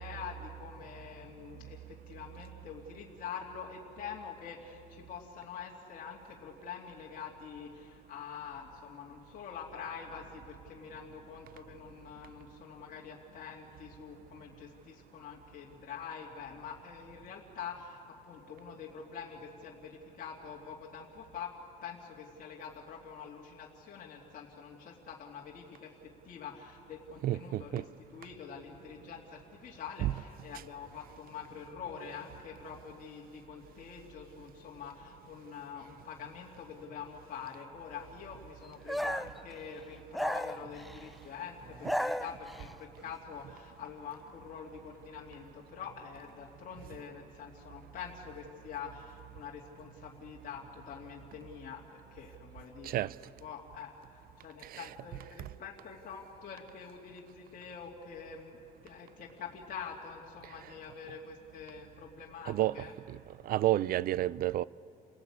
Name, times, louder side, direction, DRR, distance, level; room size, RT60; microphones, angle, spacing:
voice 1, 0.0-21.5 21.8-27.8 28.1-53.1 53.4-62.9, left 7 dB, 55° left, 2.6 m, -46 dB
voice 2, 27.2-27.8 30.0-30.1 52.8-53.1 54.6-54.9 62.5-63.2 63.4-64.6, right 14 dB, 60° right, 0.5 m, -30 dB
sound 1, 38.9-39.4 40.1-41.1 41.7-42.7, equal, ahead, 0.5 m, -34 dB
29.0 x 18.0 x 8.7 m
cardioid pair, 110°, 17 cm